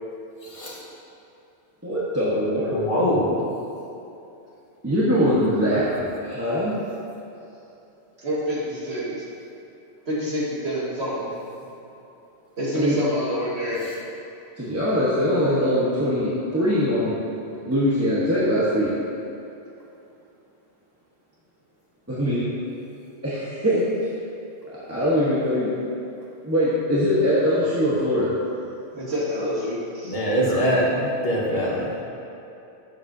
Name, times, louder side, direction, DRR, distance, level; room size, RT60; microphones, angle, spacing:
voice 1, 0.4-0.8 2.7-3.4 30.1-30.9 31.2-31.9, equal, 60° left, -5 dB, 1.8 m, -23 dB
voice 2, 1.8-2.9 4.8-5.9 6.2-6.8 12.7-13.0 14.6-17.1 17.6-18.9 22.1-22.5 23.2-23.9 24.7-25.7 26.4-28.3 30.4-30.7, equal, 15° right, -10 dB, 1.1 m, -22 dB
voice 3, 8.2-9.2 10.1-11.3 12.6-13.8 28.9-30.2, equal, 75° right, -6 dB, 2.1 m, -27 dB
11.0 x 7.2 x 2.7 m, 2.8 s
omnidirectional pair, 1.1 m